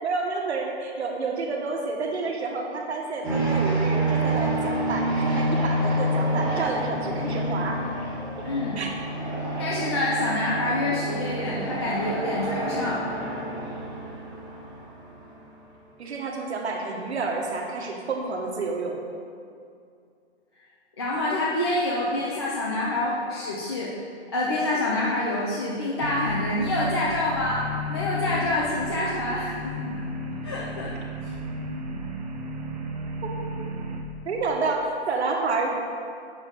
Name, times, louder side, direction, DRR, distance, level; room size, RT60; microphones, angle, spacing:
voice 1, 0.0-7.9 8.8-8.9 16.0-19.0 34.2-35.7, right 3 dB, 70° right, 1 dB, 1.6 m, -29 dB
sound 1, 3.2-15.3, right 1 dB, 10° right, 1.6 m, -28 dB
voice 2, 8.4-8.8 9.6-13.0 21.0-23.9 24.3-30.1 30.4-30.9 31.2-31.3, left 2 dB, 25° left, -6 dB, 0.5 m, -27 dB
sound 2, 26.0-34.0, equal, 35° right, 0.7 m, -33 dB
8.4 x 7.3 x 3.9 m, 2.3 s
hypercardioid pair, 175°, 34 cm